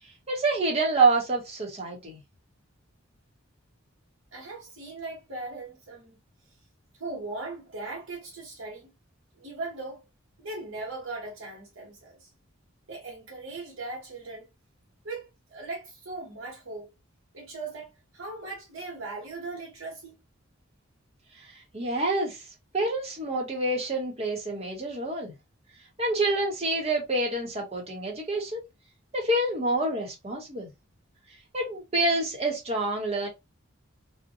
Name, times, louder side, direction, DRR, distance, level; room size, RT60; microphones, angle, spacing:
voice 1, 0.3-2.2 21.4-21.5 21.7-22.4 22.7-25.3 26.0-28.6 29.1-30.7 31.5-33.3, right 2 dB, 30° right, 0.8 m, -27 dB
voice 2, 4.3-6.2 7.0-8.9 9.4-10.0 10.4-12.3 12.9-14.5 15.0-16.9 17.3-20.1, right 3 dB, 70° right, 0.9 m, -39 dB
2.5 x 2.1 x 2.7 m
head